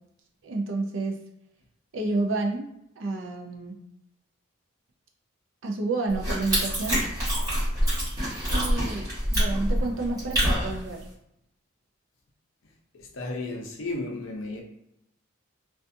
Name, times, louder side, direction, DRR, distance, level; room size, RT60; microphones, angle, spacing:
voice 1, 0.4-1.2 1.9-2.7 3.0-3.8 5.6-7.1 8.5-11.0, right 3 dB, 70° right, 0.5 m, -30 dB
sound 1, 6.1-11.1, equal, 20° right, 1.2 m, -26 dB
voice 2, 12.9-14.6, left 2 dB, 65° left, 0.6 m, -34 dB
2.4 x 2.4 x 2.6 m
head